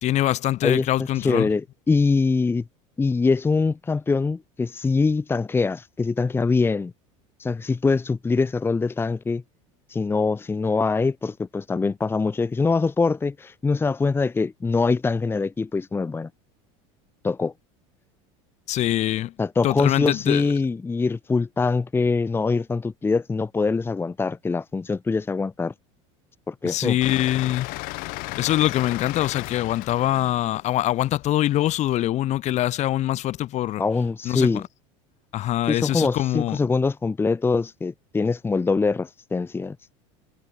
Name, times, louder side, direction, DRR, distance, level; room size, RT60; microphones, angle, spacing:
voice 1, 0.0-1.5 18.7-19.3 19.6-20.5 26.6-27.7 28.4-33.8 34.2-34.6 35.3-36.7, left 14 dB, 45° left, 2.1 m, -24 dB
voice 2, 1.2-2.6 3.0-6.9 7.4-9.4 9.9-16.3 17.2-17.5 19.4-25.7 26.5-27.0 33.8-34.6 35.7-39.8, left 4 dB, 15° left, 1.2 m, -23 dB
sound 1, 27.0-32.0, left 25 dB, 60° left, 2.7 m, -35 dB
supercardioid pair, 120°, 16 cm